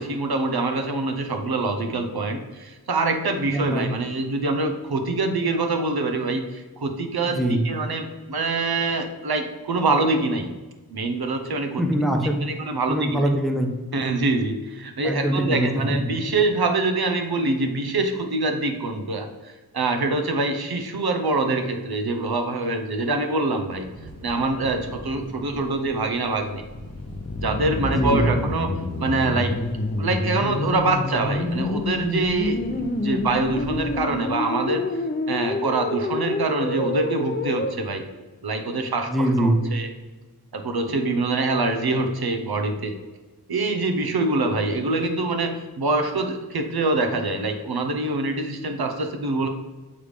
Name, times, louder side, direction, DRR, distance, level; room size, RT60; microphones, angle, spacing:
voice 1, 0.0-10.5 10.9-11.8 12.5-13.2 13.9-23.9 24.2-26.6 27.4-29.5 30.0-38.0 38.4-39.9 40.5-42.9 43.5-49.5, right 2 dB, 80° right, 5 dB, 0.8 m, -25 dB
voice 2, 3.5-3.9 7.3-7.6 11.8-12.4 12.9-13.7 15.0-15.7 27.9-28.3 39.1-39.6, right 1 dB, ahead, 2 dB, 0.9 m, -22 dB
sound 1, 23.7-34.0, right 1 dB, 40° right, 1.3 m, -41 dB
sound 2, 26.5-37.7, left 2 dB, 25° left, 0.6 m, -28 dB
6.9 x 3.2 x 5.0 m, 1.2 s
wide cardioid pair, 65°, 37 cm